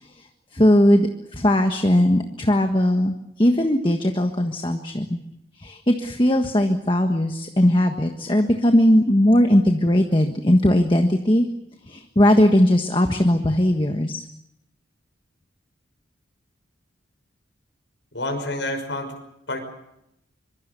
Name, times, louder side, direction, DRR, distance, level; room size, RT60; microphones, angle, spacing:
voice 1, 0.5-5.2 5.6-11.5 11.9-14.2, left 1 dB, 25° left, 5 dB, 1.5 m, -19 dB
voice 2, 18.1-19.1 19.5-19.6, left 1 dB, 75° left, 4 dB, 6.0 m, -28 dB
25.5 x 24.5 x 6.9 m, 0.82 s
head